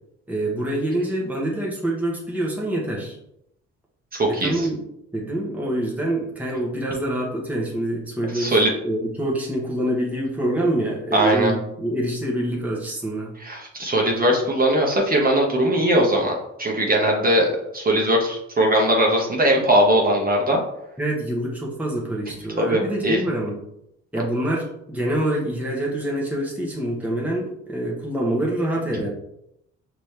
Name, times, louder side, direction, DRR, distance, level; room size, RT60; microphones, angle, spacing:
voice 1, 0.3-3.2 4.3-4.8 5.1-13.3 21.0-23.6 24.1-29.1, right 1 dB, 5° right, -4 dB, 1.1 m, -26 dB
voice 2, 4.1-4.7 8.3-8.7 11.1-11.5 13.4-20.6 22.6-23.2, right 1 dB, 30° right, -1 dB, 1.1 m, -20 dB
5.4 x 3.0 x 3.3 m, 0.81 s
cardioid pair, 90°, 30 cm